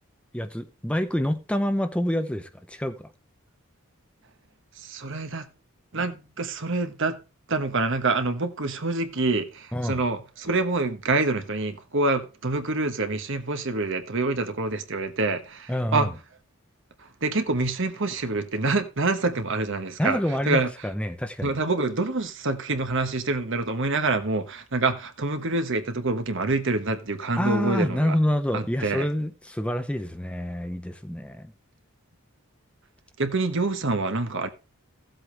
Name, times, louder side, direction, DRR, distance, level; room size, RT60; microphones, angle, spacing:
voice 1, 0.3-3.1 9.7-10.0 15.7-16.1 20.0-21.5 27.4-31.5, equal, 5° left, 0.7 m, -27 dB
voice 2, 4.8-5.5 5.9-7.2 7.5-16.1 17.0-20.7 21.4-28.2 28.5-29.1 33.2-34.5, right 3 dB, 60° right, 1.3 m, -26 dB
15.5 x 7.9 x 3.4 m
head